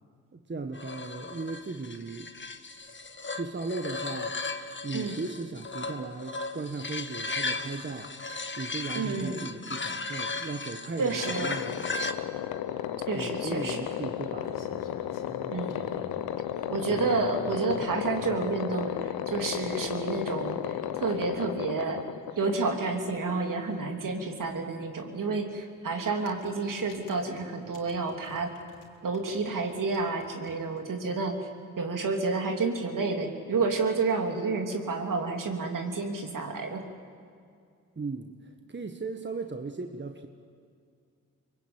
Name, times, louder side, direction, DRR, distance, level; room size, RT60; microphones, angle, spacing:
voice 1, 0.3-2.3 3.3-4.4 4.8-8.1 8.6-12.1 13.1-14.8 38.0-40.3, right 3 dB, 30° right, 6 dB, 1.5 m, -37 dB
sound 1, 0.7-12.1, left 3 dB, 30° left, 1.6 m, -36 dB
voice 2, 8.9-9.5 11.0-11.5 13.1-13.8 15.5-15.9 16.7-22.0 22.4-28.5 29.0-31.4 31.8-36.8, right 4 dB, 60° right, 3 dB, 3.2 m, -30 dB
sound 2, 11.2-23.8, left 11 dB, 85° left, 1.0 m, -34 dB
sound 3, 13.9-16.3 16.7-18.6 19.5-19.6 20.1-20.2 20.4-20.5 20.7-20.8 22.8-22.9 23.1-23.2 25.2-25.4 26.0-28.9 29.1-30.8, left 3 dB, 60° left, 3.4 m, -46 dB
23.5 x 20.5 x 8.9 m, 2.3 s
supercardioid pair, 45°, 36 cm